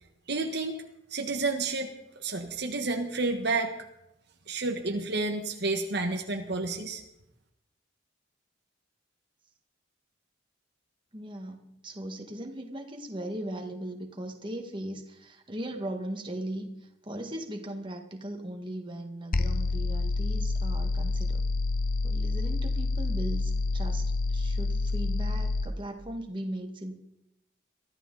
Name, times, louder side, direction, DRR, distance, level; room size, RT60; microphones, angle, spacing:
voice 1, 0.3-0.7 1.1-3.7 4.5-7.0, right 3 dB, 55° right, 4 dB, 1.5 m, -30 dB
voice 2, 11.1-21.4 22.0-26.9, right 1 dB, 25° right, 3 dB, 2.0 m, -38 dB
sound 1, 19.3-25.7, left 3 dB, 45° left, 0.8 m, -28 dB
23.5 x 14.5 x 4.1 m, 0.84 s
head